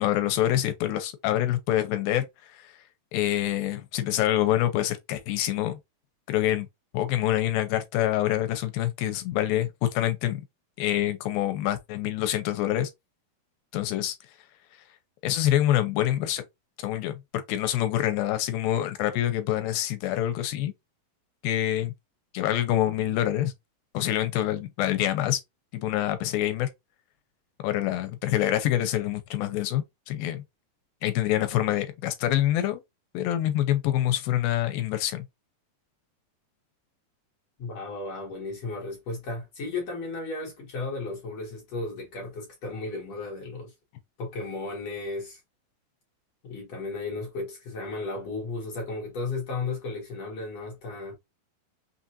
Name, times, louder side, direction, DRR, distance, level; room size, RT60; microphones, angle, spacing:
voice 1, 0.0-2.7 3.1-5.8 6.3-6.7 6.9-10.5 10.8-12.9 13.7-14.2 15.2-16.4 16.8-20.7 21.4-21.9 22.3-23.5 23.9-25.4 25.7-26.7 27.6-30.4 31.0-32.8 33.1-35.3, left 13 dB, 80° left, 2.4 m, -26 dB
voice 2, 37.6-43.7 44.2-45.4 46.4-51.1, left 3 dB, 60° left, 1.8 m, -34 dB
5.9 x 2.4 x 2.6 m
omnidirectional pair, 4.2 m